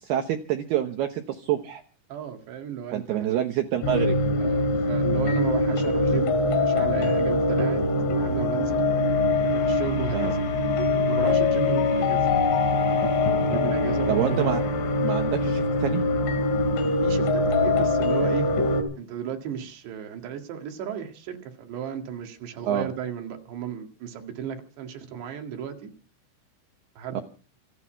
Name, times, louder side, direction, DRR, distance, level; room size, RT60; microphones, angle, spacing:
voice 1, 0.0-1.8 2.9-4.2 10.1-10.3 14.1-14.6 15.0-16.0 22.7-22.9 27.1-27.2, right 11 dB, 80° right, 6 dB, 2.3 m, -27 dB
voice 2, 2.1-3.4 4.4-7.9 8.2-8.8 9.5-10.4 11.0-12.8 13.4-14.6 17.0-18.5 19.0-25.9 27.0-27.2, right 8 dB, 60° right, 4 dB, 3.9 m, -35 dB
sound 1, 3.8-18.8, left 2 dB, 70° left, 5.1 m, -23 dB
27.0 x 9.9 x 4.5 m, 0.39 s
omnidirectional pair, 6.0 m